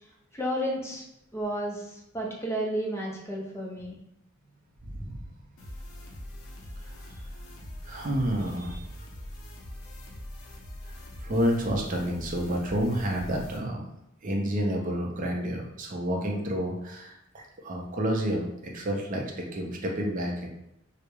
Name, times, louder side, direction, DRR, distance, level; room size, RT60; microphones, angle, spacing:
voice 1, 0.3-1.0 1.3-4.0, equal, 15° left, -2 dB, 0.5 m, -32 dB
voice 2, 4.9-5.2 6.9-7.2 7.8-8.9 11.2-13.8 14.2-20.5, equal, 40° right, 0 dB, 0.5 m, -30 dB
sound 1, 5.6-13.6, left 1 dB, 90° left, 0.5 m, -42 dB
2.3 x 2.0 x 3.0 m, 0.81 s
head